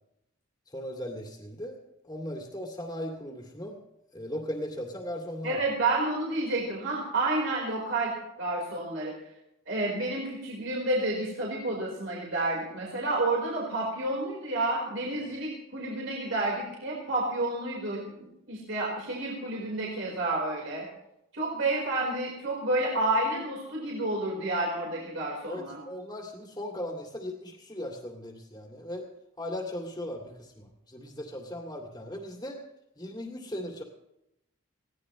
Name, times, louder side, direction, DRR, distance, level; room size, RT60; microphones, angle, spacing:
voice 1, 0.7-1.8 2.0-3.8 4.1-5.6 25.5-29.1 29.4-32.6 33.0-33.8, left 1 dB, 20° left, 0 dB, 2.5 m, -38 dB
voice 2, 5.4-8.1 8.4-9.1 9.7-20.9 21.3-25.8, right 2 dB, 60° right, -3 dB, 4.4 m, -30 dB
21.0 x 16.5 x 3.2 m, 0.86 s
head